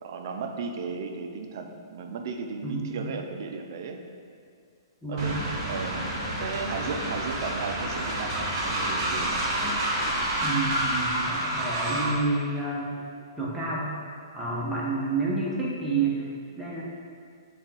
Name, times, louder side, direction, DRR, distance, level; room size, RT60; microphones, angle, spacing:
voice 1, 0.0-4.0 5.1-5.3 5.7-6.0 6.4-9.4, right 5 dB, 55° right, 5 dB, 0.3 m, -35 dB
voice 2, 2.6-3.1 5.0-5.5 10.4-13.0 13.4-13.9 14.3-16.3 16.6-16.8, right 3 dB, 5° right, -7 dB, 0.8 m, -29 dB
Train, 5.2-12.2, right 1 dB, 40° right, 0.8 m, -29 dB
3.6 x 2.3 x 4.1 m, 2.2 s
figure-of-eight pair, 120°, 2 cm